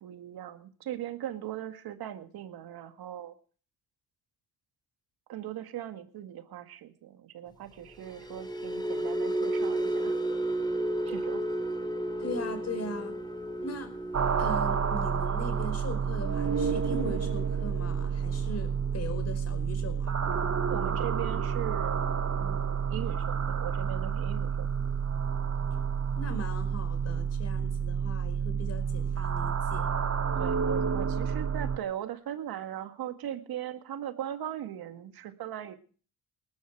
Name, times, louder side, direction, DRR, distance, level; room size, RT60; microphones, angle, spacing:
voice 1, 0.0-3.3 5.3-10.2 11.1-11.4 20.7-22.0 22.4-24.9 30.4-35.8, right 11 dB, 75° right, 8 dB, 2.0 m, -39 dB
sound 1, 7.9-24.2 24.6-24.9 25.2-25.5, right 1 dB, 10° left, 2.8 m, -35 dB
voice 2, 12.2-13.2 13.6-13.9 14.4-20.1 26.1-29.9, left 1 dB, 40° left, 9 dB, 5.0 m, -39 dB
sound 2, 14.1-31.8, right 6 dB, 45° right, 1.9 m, -29 dB
20.0 x 11.5 x 4.7 m, 0.41 s
supercardioid pair, 65°, 37 cm